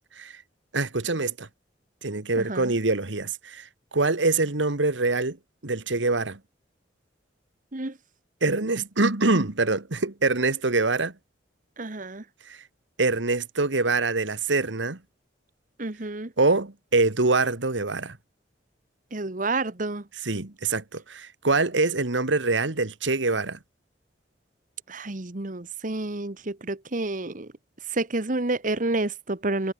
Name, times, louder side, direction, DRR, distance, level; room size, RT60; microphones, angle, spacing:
voice 1, 0.7-1.5 2.0-5.4 5.6-6.4 8.4-11.1 12.5-12.6 13.0-15.0 16.4-18.2 20.2-23.6, right 3 dB, 90° right, 1.8 m, -24 dB
voice 2, 2.4-2.7 7.7-8.0 11.8-12.2 15.8-16.3 19.1-20.0 24.9-27.5 27.9-29.7, right 2 dB, 45° right, 1.4 m, -29 dB
head